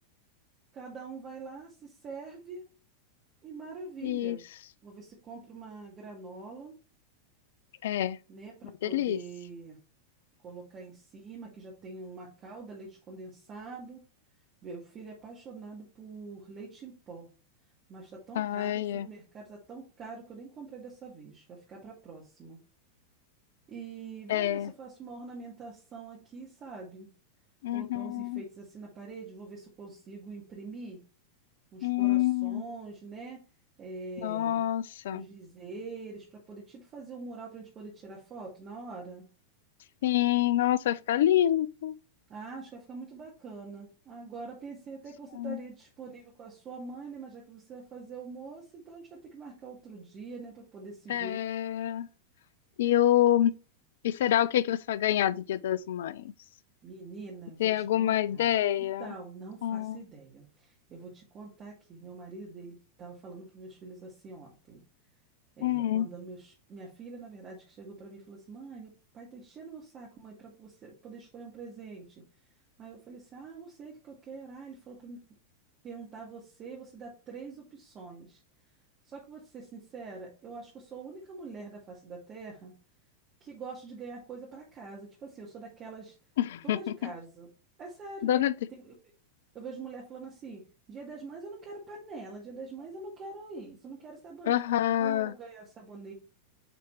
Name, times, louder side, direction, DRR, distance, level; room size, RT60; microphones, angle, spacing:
voice 1, 0.7-2.6 3.4-4.4 4.8-6.7 8.3-9.8 10.4-14.0 14.6-17.3 17.9-22.6 23.7-27.1 27.7-31.0 31.7-33.4 33.8-34.7 35.1-39.2 42.3-51.4 56.8-58.4 58.8-64.8 65.6-72.2 72.8-75.2 75.8-78.4 79.0-82.7 83.4-86.1 86.6-87.5 87.8-88.5 88.8-88.9 89.5-94.6 95.0-96.1, right 4 dB, 30° right, 2.1 m, -44 dB
voice 2, 4.0-4.4 7.8-8.2 8.8-9.2 18.4-19.1 24.3-24.7 27.6-28.4 31.8-32.6 34.2-35.2 40.0-42.0 45.3-45.6 51.1-52.1 52.8-53.5 54.0-56.3 57.6-59.1 59.6-60.0 65.6-66.1 86.4-87.1 88.2-88.5 94.4-95.3, left 12 dB, 60° left, 0.3 m, -27 dB
8.5 x 4.1 x 3.3 m
figure-of-eight pair, 90°, 0 cm